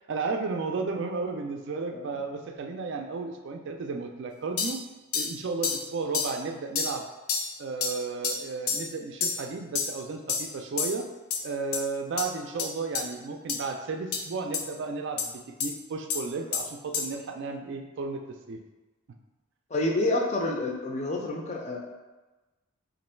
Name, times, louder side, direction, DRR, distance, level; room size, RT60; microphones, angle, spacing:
voice 1, 0.1-4.8 5.1-7.0 7.6-11.1 11.4-18.2 18.5-18.6, right 4 dB, 55° right, 3 dB, 0.3 m, -33 dB
sound 1, 4.6-4.8 5.1-5.3 5.6-5.8 6.1-6.3 6.7-6.9 7.3-7.5 7.8-7.9 8.2-8.4 8.7-8.9 9.2-9.4 9.7-9.9 10.3-10.5 10.8-11.0 11.3-11.4 11.7-11.8 12.2-12.3 12.6-12.7 12.9-13.0 13.5-13.6 14.1-14.2 14.5-14.6 15.2-15.3 15.6-15.7 16.1-16.2 16.5-16.6 16.9-17.1, left 5 dB, 85° left, 0.5 m, -29 dB
voice 2, 19.7-21.8, left 2 dB, 30° left, 0 dB, 0.5 m, -28 dB
3.0 x 2.6 x 4.3 m, 1.2 s
head